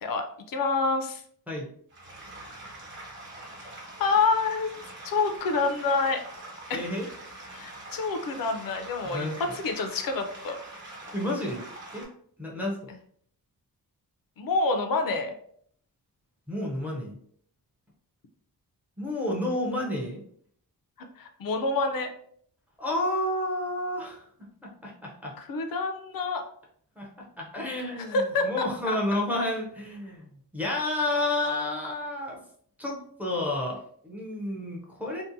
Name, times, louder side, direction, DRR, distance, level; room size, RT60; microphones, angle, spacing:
voice 1, 0.0-1.2 4.0-4.7 5.0-6.2 6.7-6.8 7.5-10.6 14.4-15.3 21.0-22.1 25.4-26.4 28.1-29.0, left 3 dB, 70° left, 5 dB, 0.5 m, -27 dB
sound 1, 1.9-12.0, right 2 dB, 35° right, 1.0 m, -44 dB
voice 2, 6.7-7.1 9.0-9.4 11.1-11.6 11.9-12.1 12.4-12.9 16.5-17.2 19.0-20.2 22.8-24.3 24.6-25.3 27.0-32.4 32.8-35.2, left 1 dB, 5° right, -2 dB, 0.4 m, -30 dB
2.6 x 2.1 x 2.5 m, 0.62 s
wide cardioid pair, 160°, 36 cm